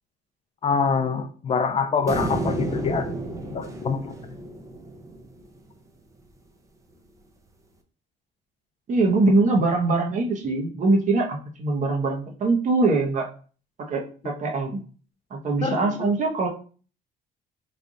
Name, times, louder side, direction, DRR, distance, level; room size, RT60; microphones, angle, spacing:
voice 1, 0.6-3.1 3.5-4.1 15.6-16.1, left 5 dB, 35° left, 9 dB, 0.4 m, -25 dB
sound 1, 2.1-5.5, right 1 dB, 20° right, 0.6 m, -31 dB
voice 2, 8.9-13.3 13.9-14.8 15.3-16.5, right 3 dB, 45° right, 1 dB, 1.0 m, -22 dB
3.3 x 2.4 x 3.9 m, 0.40 s
cardioid pair, 110°, 17 cm